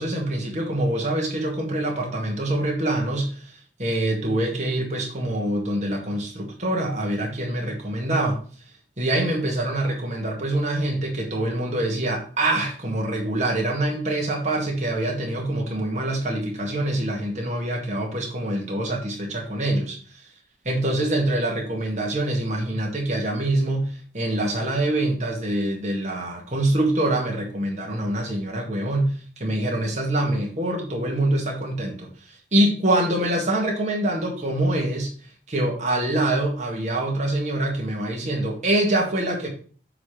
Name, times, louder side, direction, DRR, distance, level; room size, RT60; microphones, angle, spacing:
voice 1, 0.0-8.4 9.0-20.2 20.7-35.1 35.5-39.5, right 1 dB, 40° right, 1.8 m, -25 dB
7.1 x 3.4 x 5.7 m
head